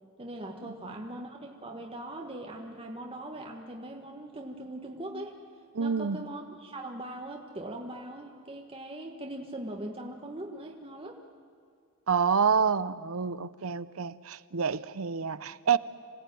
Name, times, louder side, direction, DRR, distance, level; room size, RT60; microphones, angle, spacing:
voice 1, 0.2-5.4 5.8-11.2, right 1 dB, 25° right, 1.5 m, -40 dB
voice 2, 5.7-6.2 12.1-15.8, right 6 dB, 70° right, 0.7 m, -28 dB
27.0 x 17.0 x 9.2 m
head